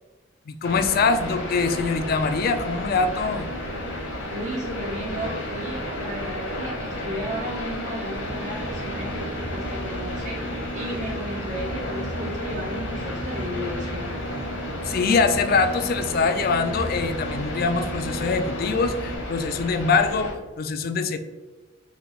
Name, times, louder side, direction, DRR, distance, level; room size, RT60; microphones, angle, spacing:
voice 1, 0.5-3.5 14.8-21.2, left 4 dB, 50° left, 9 dB, 0.4 m, -23 dB
sound 1, 0.6-20.3, left 1 dB, 85° left, 1.1 m, -32 dB
voice 2, 4.3-14.1, equal, 40° right, -3 dB, 0.6 m, -34 dB
Boat Water vehicle, 8.2-19.2, right 1 dB, 75° right, 1.5 m, -37 dB
4.2 x 2.3 x 3.9 m, 1.2 s
head